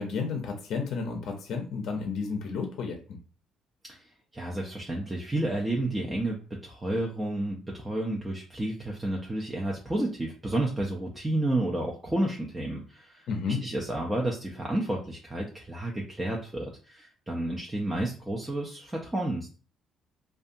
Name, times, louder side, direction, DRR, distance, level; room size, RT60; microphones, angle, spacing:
voice 1, 0.0-3.2 13.3-13.6, left 5 dB, 55° left, 3 dB, 0.5 m, -32 dB
voice 2, 4.3-19.6, right 1 dB, 10° right, -2 dB, 0.4 m, -31 dB
2.6 x 2.2 x 2.5 m, 0.39 s
cardioid pair, 130°, 0 cm